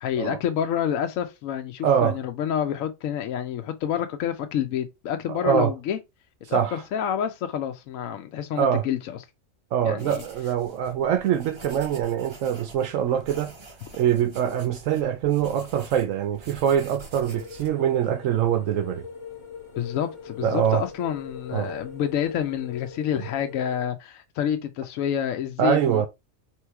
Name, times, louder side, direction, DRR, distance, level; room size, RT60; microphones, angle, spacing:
voice 1, 0.0-6.0 6.5-9.2 9.8-10.2 19.8-26.1, left 9 dB, 75° left, 1.0 m, -28 dB
voice 2, 1.8-2.2 5.3-5.7 6.5-6.8 8.6-8.8 9.7-13.5 13.9-19.1 20.4-20.8 21.5-21.8 25.6-26.1, right 9 dB, 75° right, 0.9 m, -24 dB
sound 1, 10.0-17.7, right 2 dB, 25° right, 0.7 m, -46 dB
sound 2, 17.2-23.8, left 6 dB, 30° left, 0.6 m, -41 dB
3.6 x 3.0 x 4.5 m
omnidirectional pair, 1.4 m